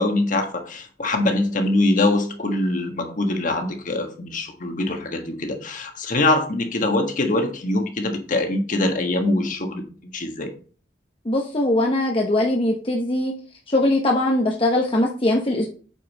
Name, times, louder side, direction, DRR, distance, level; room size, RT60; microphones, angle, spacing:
voice 1, 0.0-9.8 10.1-10.5, left 2 dB, 45° left, 4 dB, 1.5 m, -23 dB
voice 2, 11.2-13.3 13.7-15.7, left 1 dB, 30° left, 0 dB, 1.0 m, -21 dB
8.5 x 5.5 x 4.1 m, 0.40 s
head